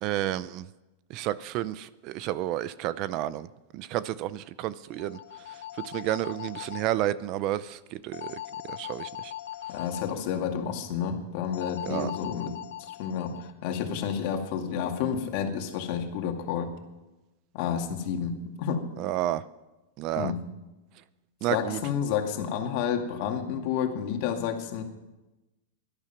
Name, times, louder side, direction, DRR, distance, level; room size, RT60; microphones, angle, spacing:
voice 1, 0.0-0.7 1.1-3.5 3.7-5.2 5.5-9.3 11.9-12.1 19.0-19.4 20.0-20.3 21.4-21.8, right 13 dB, 40° right, 17 dB, 0.5 m, -31 dB
sound 1, 4.9-6.9 8.1-10.1 11.5-13.5, left 12 dB, 85° left, 0.7 m, -40 dB
voice 2, 9.7-12.5 12.8-13.3 13.6-16.7 17.5-18.8 20.2-20.4 21.5-24.8, left 8 dB, 50° left, 4 dB, 2.2 m, -30 dB
17.5 x 12.0 x 5.9 m, 1.0 s
supercardioid pair, 155°, 0 cm